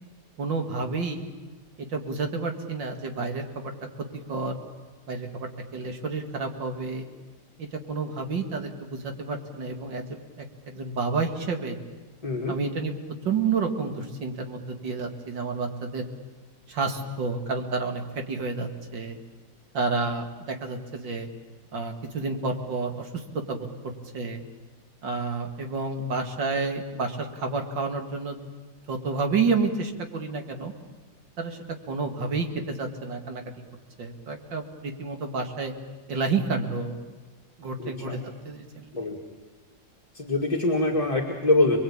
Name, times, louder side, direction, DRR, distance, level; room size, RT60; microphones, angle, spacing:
voice 1, 0.4-1.3 1.8-3.7 4.3-4.6 5.1-7.0 7.6-11.8 12.5-12.9 13.2-16.1 16.7-19.2 19.7-21.3 21.7-23.2 23.5-23.7 24.1-24.4 25.0-28.4 28.9-30.7 31.4-31.6 31.9-33.4 34.0-35.7 36.1-36.9 37.6-39.0, right 4 dB, 70° right, 4 dB, 2.8 m, -30 dB
voice 2, 12.2-12.5 37.8-38.2 38.9-39.2 40.1-41.8, left 2 dB, 20° left, 0 dB, 2.0 m, -24 dB
27.5 x 21.5 x 8.7 m, 1.3 s
omnidirectional pair, 2.1 m